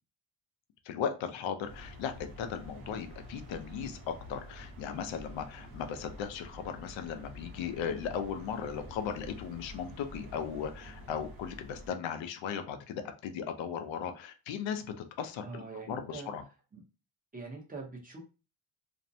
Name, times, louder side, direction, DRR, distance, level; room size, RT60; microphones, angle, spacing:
voice 1, 0.8-16.4, left 7 dB, 80° left, 7 dB, 0.6 m, -37 dB
sound 1, 1.6-11.9, equal, 50° right, 1.0 m, -48 dB
voice 2, 15.4-16.3 16.7-16.8 17.3-18.2, right 3 dB, 20° right, -2 dB, 0.6 m, -43 dB
2.6 x 2.1 x 2.6 m, 0.33 s
cardioid pair, 145°, 45 cm